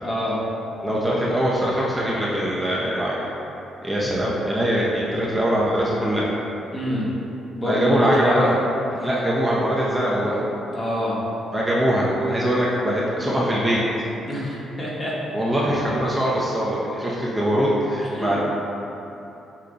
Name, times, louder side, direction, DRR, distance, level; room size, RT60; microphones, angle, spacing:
voice 1, 0.0-0.4 6.7-7.1 7.6-8.4 10.7-11.2 14.3-15.2 18.1-18.4, equal, 30° left, -6 dB, 1.1 m, -26 dB
voice 2, 0.8-3.3 3.8-6.3 7.6-8.6 9.0-10.4 11.5-13.8 15.3-18.4, equal, 15° right, -6 dB, 0.6 m, -22 dB
5.2 x 2.2 x 3.8 m, 2.9 s
cardioid pair, 90°, 0 cm